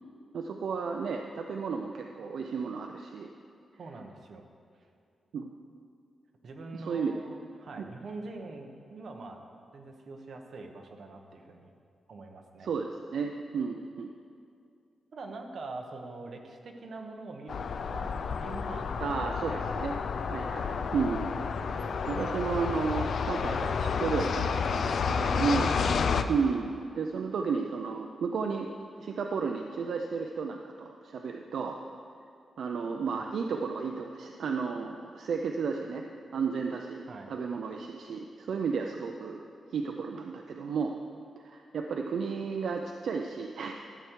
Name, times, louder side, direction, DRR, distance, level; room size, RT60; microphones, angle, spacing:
voice 1, 0.3-3.3 5.3-5.5 6.7-7.1 7.8-7.9 12.6-14.1 19.0-20.0 20.3-21.3 22.1-25.7 26.3-28.7 29.0-31.8 32.6-36.0 36.3-37.0 37.3-39.4 39.7-40.9 41.4-43.7, right 5 dB, 65° right, 3 dB, 0.5 m, -33 dB
voice 2, 3.8-4.5 6.4-9.4 9.7-11.7 12.1-12.7 15.1-19.2 19.5-19.8 21.6-22.1 25.2-25.9 37.1-37.3, right 3 dB, 50° right, 3 dB, 1.0 m, -44 dB
sound 1, 17.5-26.2, left 6 dB, 55° left, 0.4 m, -30 dB
12.5 x 8.0 x 4.6 m, 2.4 s
wide cardioid pair, 170°, 0 cm